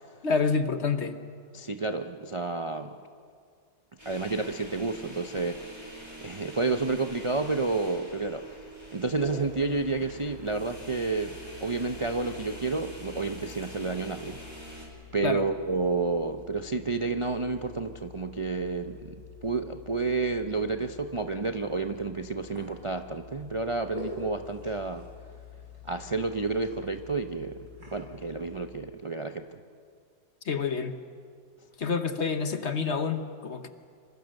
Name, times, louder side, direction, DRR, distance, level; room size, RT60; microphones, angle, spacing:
voice 1, 0.2-1.2 15.2-15.4 30.5-31.0 31.8-33.7, left 5 dB, 45° left, 9 dB, 1.2 m, -28 dB
voice 2, 1.5-2.9 4.0-5.6 6.2-8.6 8.9-14.4 15.1-25.1 25.8-29.5, right 3 dB, 55° right, 6 dB, 0.3 m, -30 dB
sound 1, 4.0-14.9, right 1 dB, 15° right, 4.7 m, -45 dB
sound 2, 9.1-28.7, left 4 dB, 90° right, 6.6 m, -47 dB
27.0 x 24.5 x 6.6 m, 2.2 s
omnidirectional pair, 1.9 m